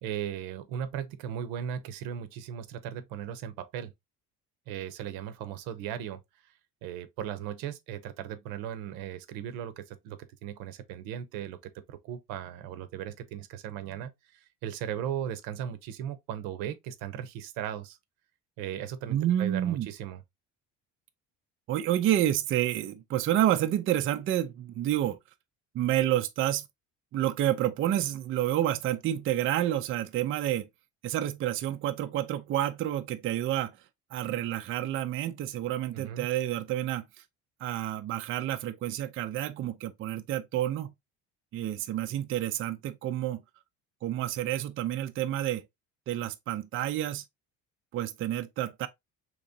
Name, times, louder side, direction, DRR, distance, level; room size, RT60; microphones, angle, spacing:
voice 1, 0.0-3.9 4.7-6.2 6.8-18.0 18.6-20.2 35.9-36.3, right 9 dB, 85° right, 0.8 m, -37 dB
voice 2, 19.1-19.9 21.7-25.2 25.7-26.6 27.1-30.7 31.0-33.7 34.1-37.0 37.6-40.9 41.5-43.4 44.0-45.7 46.1-47.2 47.9-48.9, right 12 dB, 40° right, 0.4 m, -29 dB
3.7 x 3.0 x 2.6 m
cardioid pair, 130°, 34 cm